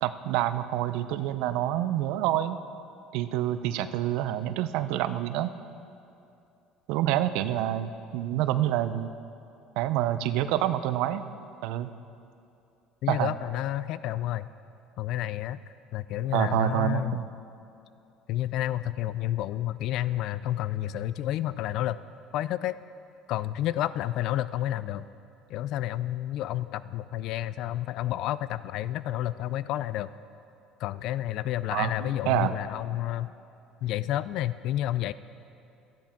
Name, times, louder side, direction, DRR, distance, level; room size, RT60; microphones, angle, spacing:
voice 1, 0.0-2.6 3.1-5.5 6.9-9.1 9.8-11.2 11.6-11.9 13.1-13.4 16.3-17.3 31.7-32.5, right 12 dB, 75° right, 12 dB, 0.5 m, -27 dB
voice 2, 13.0-14.5 15.0-15.6 15.9-17.2 18.3-22.0 22.3-22.8 23.3-25.1 25.5-30.1 30.8-33.3 33.8-35.1, left 13 dB, 65° left, 16 dB, 0.3 m, -30 dB
13.0 x 10.5 x 4.4 m, 2.7 s
supercardioid pair, 95°, 0 cm